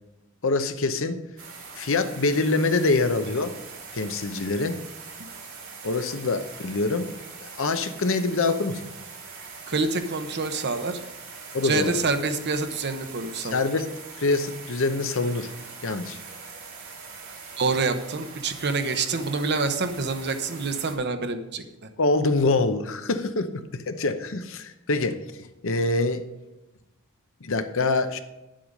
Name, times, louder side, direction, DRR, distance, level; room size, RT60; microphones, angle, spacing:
voice 1, 0.4-1.2 1.8-3.5 3.9-4.8 5.8-7.1 7.6-8.8 11.5-12.0 13.5-13.9 14.2-15.5 15.8-16.2 22.0-25.2 25.6-26.2 27.4-28.2, left 3 dB, 65° left, 9 dB, 0.8 m, -25 dB
sound 1, 1.4-20.9, right 5 dB, 70° right, 3.0 m, -42 dB
voice 2, 9.7-11.0 11.6-13.6 17.6-21.6, right 3 dB, 55° right, 8 dB, 0.9 m, -27 dB
10.5 x 7.6 x 5.2 m, 0.98 s
head